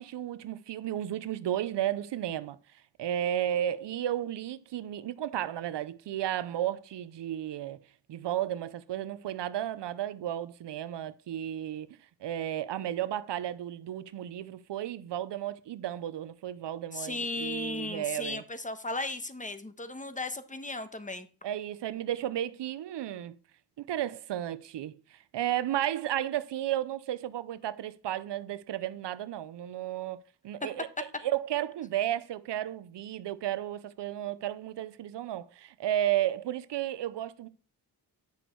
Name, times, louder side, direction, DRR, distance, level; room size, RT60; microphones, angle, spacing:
voice 1, 0.0-2.6 3.0-7.8 8.1-18.4 21.4-23.4 23.8-37.5, right 12 dB, 85° right, 0.6 m, -33 dB
voice 2, 16.9-21.3, left 2 dB, 20° left, 1.2 m, -36 dB
9.8 x 6.1 x 4.5 m
cardioid pair, 60°, 41 cm